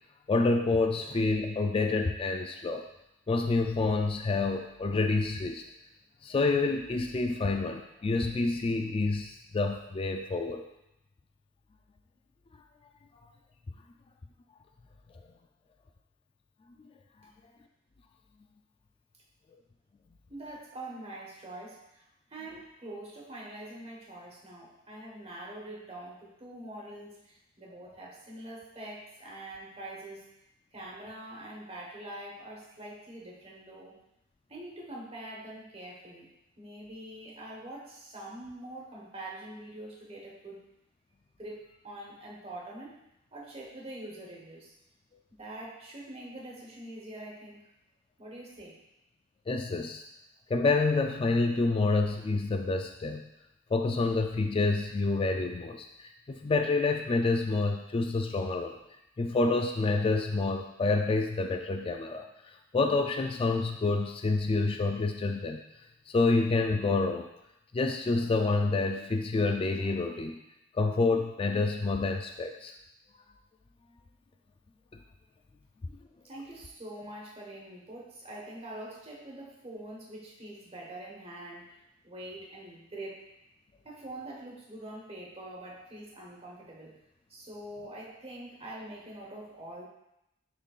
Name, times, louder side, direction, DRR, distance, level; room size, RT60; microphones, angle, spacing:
voice 1, 0.3-2.9 3.3-5.6 6.2-10.6 49.5-50.0 50.5-53.3 53.7-58.7 59.2-62.3 62.7-65.6 66.1-67.3 67.7-70.4 70.7-72.7, left 3 dB, 25° left, 4 dB, 0.3 m, -28 dB
voice 2, 20.3-22.0 22.3-30.3 30.7-34.0 34.5-40.6 41.4-43.0 43.3-44.7 45.3-47.8 48.2-48.8 76.2-81.8 82.0-83.2 83.8-87.0 87.3-89.9, right 1 dB, 30° right, -3 dB, 1.3 m, -44 dB
10.5 x 3.7 x 2.4 m, 0.85 s
head